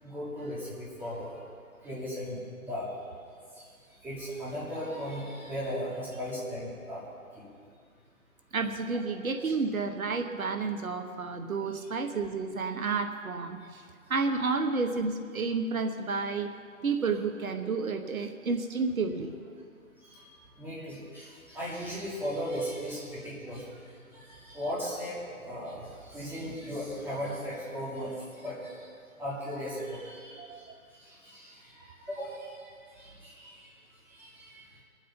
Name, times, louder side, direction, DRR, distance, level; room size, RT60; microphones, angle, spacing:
voice 1, 0.0-1.4 1.8-2.9 3.5-3.7 4.0-7.0 7.3-7.4 9.4-9.5 11.9-12.0 20.1-20.3 20.6-23.6 24.1-28.8 29.2-30.5 31.0-33.7 34.1-34.6, equal, 5° right, -9 dB, 2.8 m, -37 dB
voice 2, 8.5-13.8 14.1-16.5 16.8-19.4 30.4-30.8, right 4 dB, 75° right, 7 dB, 1.1 m, -31 dB
21.0 x 7.8 x 5.2 m, 2.2 s
hypercardioid pair, 150°, 42 cm